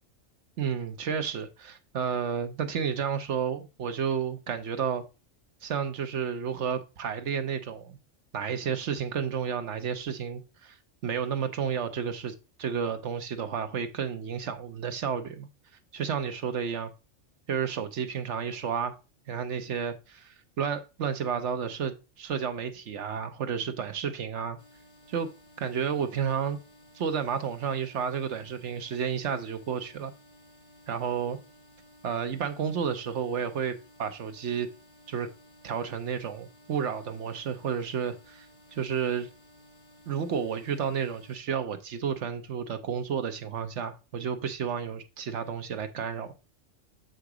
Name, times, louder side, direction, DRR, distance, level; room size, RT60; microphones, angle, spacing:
voice 1, 0.6-5.0 5.6-8.0 8.3-10.8 11.0-15.5 15.9-16.9 17.5-19.0 19.3-24.6 25.1-25.3 25.6-26.6 26.9-30.1 30.9-31.4 32.0-34.7 35.1-35.3 35.6-38.5 38.7-39.3 40.1-46.3, right 7 dB, 65° right, 1.1 m, -31 dB
sound 1, 24.6-41.4, equal, 35° left, 1.8 m, -57 dB
8.0 x 3.8 x 4.8 m
omnidirectional pair, 1.3 m